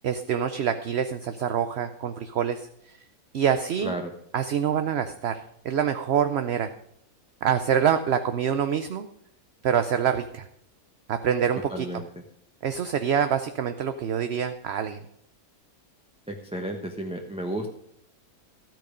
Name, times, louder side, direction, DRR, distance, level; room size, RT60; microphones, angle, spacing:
voice 1, 0.0-2.6 3.3-3.9 4.3-6.7 7.4-9.1 9.6-10.4 11.1-12.0 12.6-15.0, right 8 dB, 55° right, 9 dB, 0.8 m, -26 dB
voice 2, 3.8-4.1 11.7-12.1 16.3-17.7, right 1 dB, 5° right, 2 dB, 0.9 m, -32 dB
13.5 x 9.2 x 5.1 m, 0.73 s
omnidirectional pair, 1.6 m